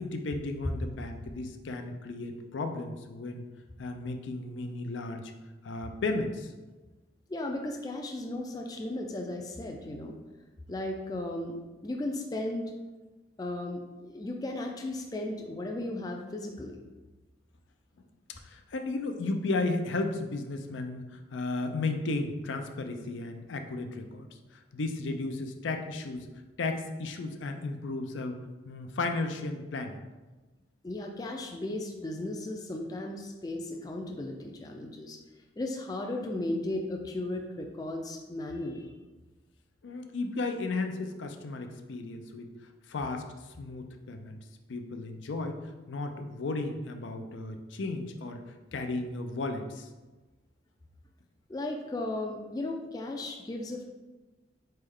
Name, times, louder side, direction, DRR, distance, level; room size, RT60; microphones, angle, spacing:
voice 1, 0.0-3.4 3.8-5.3 5.6-6.5 18.4-24.3 24.7-26.3 26.6-28.4 28.7-30.0 39.8-42.5 42.9-43.3 43.6-44.4 44.7-45.6 45.9-48.4 48.7-49.9, left 3 dB, 85° left, 6 dB, 0.5 m, -34 dB
voice 2, 7.3-10.2 10.7-11.6 11.8-12.7 13.4-16.8 30.8-35.2 35.6-38.9 51.5-53.8, left 1 dB, 20° left, 2 dB, 0.3 m, -35 dB
4.2 x 3.3 x 3.6 m, 1.2 s
head